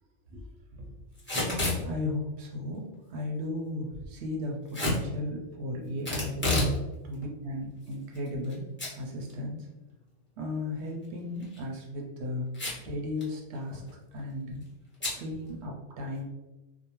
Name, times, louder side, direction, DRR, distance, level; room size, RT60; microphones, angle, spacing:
Packing tape duct tape / Tearing, 1.2-1.8 4.7-5.0 6.0-6.8 7.1-7.2 7.9-8.5 8.8-8.9 9.3-9.4 11.4-11.6 12.5-12.9 13.2-13.3 13.5-13.9 15.0-15.2, left 1 dB, 15° left, 0.4 m, -29 dB
voice 1, 1.7-6.5 7.0-9.7 10.4-12.5 12.8-13.8 14.1-14.7 15.1-16.3, left 1 dB, 65° right, 0 dB, 0.7 m, -35 dB
2.6 x 2.0 x 2.9 m, 1.1 s
omnidirectional pair, 1.4 m